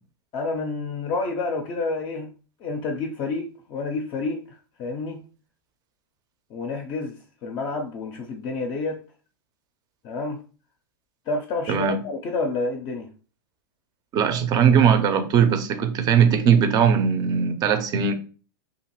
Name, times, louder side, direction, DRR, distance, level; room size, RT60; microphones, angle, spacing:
voice 1, 0.3-2.3 2.6-5.3 6.5-9.0 10.0-10.4 11.3-13.1, left 3 dB, 35° left, 0.5 m, -29 dB
voice 2, 11.7-12.0 14.1-18.1, right 7 dB, 30° right, 0.5 m, -19 dB
2.5 x 2.4 x 2.9 m
hypercardioid pair, 115°, 12 cm